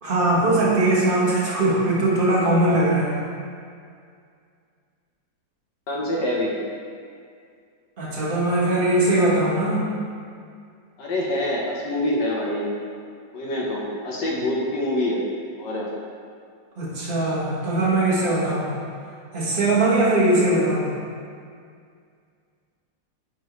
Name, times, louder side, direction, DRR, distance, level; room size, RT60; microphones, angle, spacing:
voice 1, 0.0-3.2 8.0-9.9 16.8-18.7 19.3-20.9, right 2 dB, 30° right, -7 dB, 1.4 m, -20 dB
voice 2, 5.9-6.6 11.0-12.8 13.3-15.2 15.6-15.9 18.5-18.7, left 1 dB, 70° left, -3 dB, 1.5 m, -25 dB
9.0 x 4.4 x 3.1 m, 2.2 s
omnidirectional pair, 2.0 m